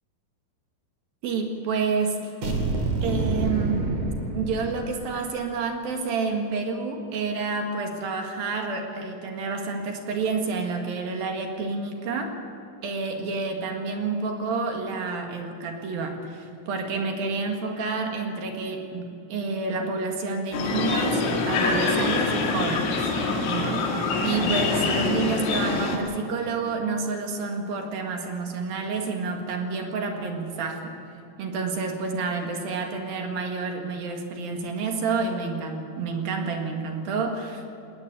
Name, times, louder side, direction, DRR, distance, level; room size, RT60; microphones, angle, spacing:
voice 1, 1.2-2.3 3.0-3.9 4.3-12.4 12.8-23.1 23.4-31.0 31.4-37.6, right 4 dB, 55° right, 3 dB, 3.0 m, -29 dB
sound 1, 2.4-5.2, right 2 dB, 40° right, 3.3 m, -27 dB
sound 2, 20.5-26.0, left 3 dB, 75° left, 4.8 m, -25 dB
21.0 x 19.0 x 8.4 m, 2.7 s
omnidirectional pair, 6.0 m